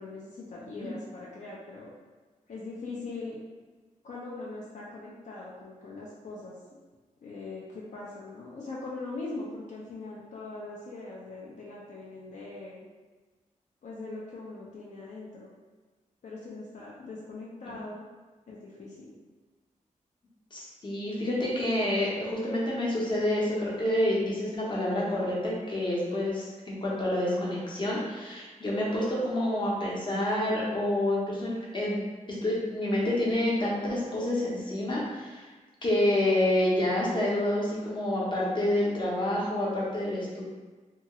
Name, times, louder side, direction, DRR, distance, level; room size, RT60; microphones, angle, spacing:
voice 1, 0.0-1.9 2.5-3.4 4.0-6.6 7.2-12.8 13.8-15.5 16.2-18.1 18.5-19.1, left 3 dB, 65° left, -5 dB, 0.5 m, -41 dB
voice 2, 20.5-32.0 32.4-35.5 35.8-40.4, left 1 dB, 35° left, -5 dB, 0.7 m, -28 dB
2.9 x 2.3 x 2.9 m, 1.3 s
wide cardioid pair, 145°, 13 cm